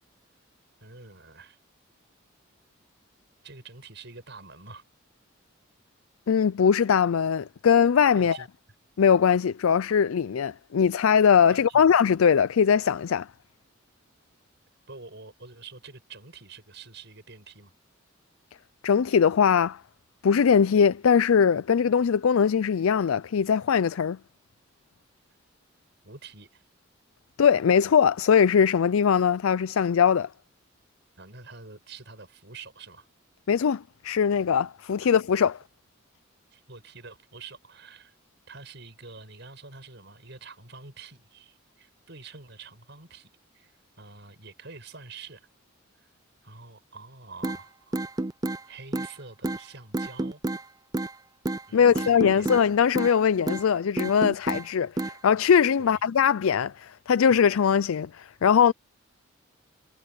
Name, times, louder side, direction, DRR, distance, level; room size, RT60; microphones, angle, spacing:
voice 1, 0.8-1.6 3.4-4.8 8.1-8.5 11.5-11.8 14.9-17.7 26.0-26.6 31.2-33.1 35.0-35.1 36.5-38.1 38.5-43.3 43.5-45.5 46.0-46.1 46.4-48.0 48.7-50.4 51.7-52.5 55.8-56.0, right 4 dB, 55° right, 6.4 m, -46 dB
voice 2, 6.3-8.4 9.0-13.3 18.8-19.8 20.2-24.2 27.4-30.3 33.5-35.6 51.7-58.7, left 7 dB, 85° left, 0.4 m, -21 dB
sound 1, 47.4-47.6 47.9-48.6 48.9-49.1 49.4-49.6 49.9-50.6 50.9-51.1 51.5-51.6 52.0-52.7 53.0-53.2 53.5-53.7 54.0-54.6 55.0-55.2, right 2 dB, 20° right, 0.5 m, -29 dB
head